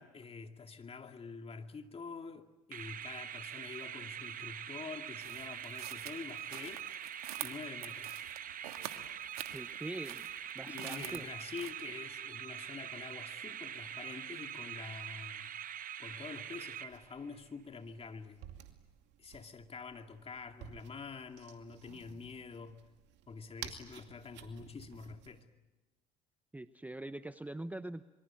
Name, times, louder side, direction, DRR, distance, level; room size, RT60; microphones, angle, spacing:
voice 1, 0.0-6.9 7.4-8.3 10.7-15.5 16.0-18.4 19.2-22.8 23.3-25.5, left 5 dB, 30° left, 6 dB, 2.4 m, -47 dB
sound 1, 2.7-17.4, right 9 dB, 45° right, 1.2 m, -44 dB
sound 2, 5.2-11.7, right 13 dB, 90° right, 1.6 m, -46 dB
voice 2, 9.5-10.3 10.5-11.3 26.5-28.0, right 1 dB, 10° right, 12 dB, 0.8 m, -43 dB
sound 3, 16.9-25.4, right 11 dB, 70° right, 2.4 m, -53 dB
26.5 x 23.5 x 9.0 m, 1.1 s
hypercardioid pair, 70°, 19 cm